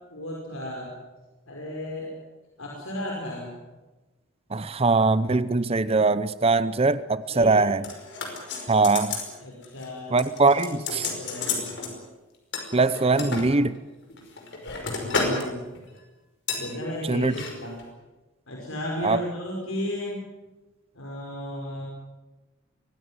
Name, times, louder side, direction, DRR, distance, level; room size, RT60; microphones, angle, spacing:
voice 1, 0.1-0.9 1.5-2.1 2.6-3.5 7.3-7.6 9.4-10.2 10.5-11.5 15.0-15.6 16.5-17.7 18.5-20.2 20.9-21.8, left 1 dB, 80° left, -2 dB, 5.5 m, -34 dB
voice 2, 4.5-7.8 8.7-9.2 10.1-11.1 12.7-13.8 17.1-17.3 19.0-19.2, right 3 dB, 30° right, 16 dB, 0.7 m, -22 dB
sound 1, 7.8-9.3 9.6-9.9 10.2-11.9 12.5-13.5 14.1-15.5 15.7-16.0 16.5-16.7 17.2-17.5 17.8-17.9, left 4 dB, 55° left, 5.4 m, -31 dB
23.5 x 17.0 x 9.8 m, 1.2 s
head